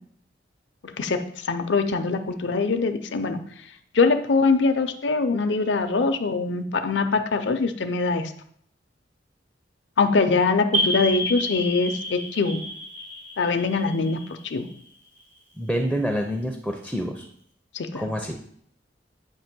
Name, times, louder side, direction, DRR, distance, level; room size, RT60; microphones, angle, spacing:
voice 1, 0.8-3.4 3.9-8.3 10.0-12.6 13.4-14.2 14.4-14.7 17.7-18.1, left 4 dB, 75° left, 7 dB, 0.6 m, -23 dB
sound 1, 10.7-15.2, equal, 80° right, 2.7 m, -30 dB
voice 2, 15.6-17.3 17.9-18.4, equal, ahead, 3 dB, 0.5 m, -27 dB
8.7 x 2.9 x 6.0 m, 0.65 s
head